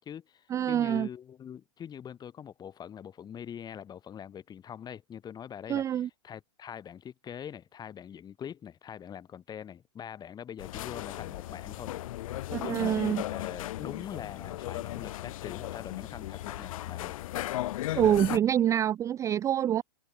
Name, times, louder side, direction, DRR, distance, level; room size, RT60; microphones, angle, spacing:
voice 1, 0.0-11.9 12.6-17.2, left 9 dB, 20° left, 4.8 m, -43 dB
voice 2, 0.5-1.1 5.7-6.1 12.5-13.2 17.9-19.8, right 10 dB, 15° right, 0.4 m, -26 dB
sound 1, 10.6-18.4, left 15 dB, 60° left, 3.4 m, -36 dB
hypercardioid pair, 130°, 20 cm